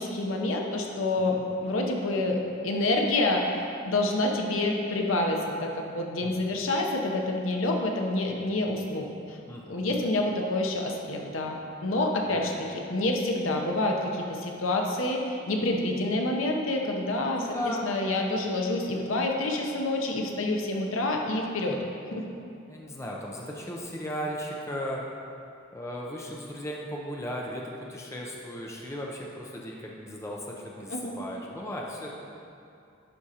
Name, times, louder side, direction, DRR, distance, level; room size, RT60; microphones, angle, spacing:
voice 1, 0.0-9.4 9.7-12.5 12.9-21.8 22.1-22.3 30.9-31.1, left 2 dB, 75° left, 1 dB, 0.8 m, -28 dB
voice 2, 9.5-10.0 12.3-12.4 17.3-17.9 22.7-25.0 25.7-32.1, equal, 15° left, -2 dB, 0.5 m, -36 dB
11.0 x 5.0 x 2.9 m, 2.6 s
head